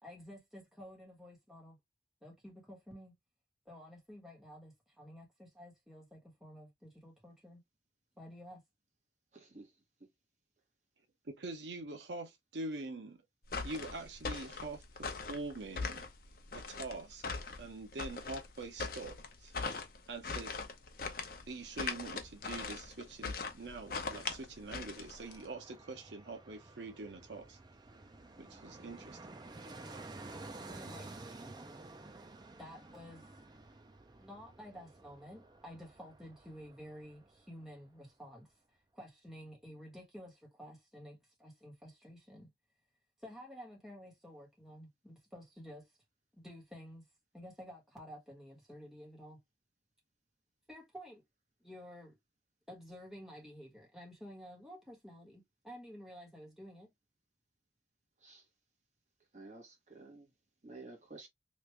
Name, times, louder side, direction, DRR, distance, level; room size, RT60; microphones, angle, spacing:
voice 1, 0.0-1.8 2.2-3.2 3.6-7.6 8.2-8.6 30.6-31.9 32.6-33.4 34.2-42.5 43.2-45.9 46.3-47.1 47.3-49.4 50.7-51.2 51.6-52.1 52.7-56.9, equal, ahead, 1.3 m, -52 dB
voice 2, 9.3-9.7 58.2-58.4 59.3-60.3 60.6-61.3, right 3 dB, 40° right, 1.3 m, -52 dB
voice 3, 11.3-13.2 13.6-16.1 16.5-17.2 17.6-19.5 20.1-20.5 21.5-27.6 28.4-29.2, right 2 dB, 75° right, 0.8 m, -44 dB
sound 1, 13.5-25.4, left 4 dB, 50° left, 0.7 m, -41 dB
Fixed-wing aircraft airplane, 20.8-37.7 38.0-38.1, right 2 dB, 25° right, 0.4 m, -53 dB
3.2 x 2.5 x 3.2 m
head